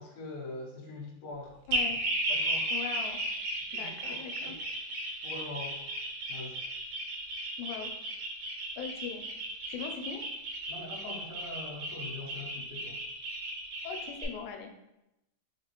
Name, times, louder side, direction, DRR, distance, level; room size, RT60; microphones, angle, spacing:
voice 1, 0.0-1.6 2.3-2.7 3.7-4.6 5.2-5.9 6.3-6.6 10.7-13.0, left 2 dB, 70° left, -2 dB, 1.3 m, -43 dB
voice 2, 1.7-2.0 2.7-3.2 3.7-4.5 7.6-7.9 8.8-9.2 9.7-10.3 13.8-14.7, left 7 dB, 85° left, 3 dB, 2.0 m, -40 dB
sound 1, 1.7-14.2, right 1 dB, 75° right, 1.2 m, -35 dB
4.0 x 3.4 x 2.9 m, 0.90 s
omnidirectional pair, 3.3 m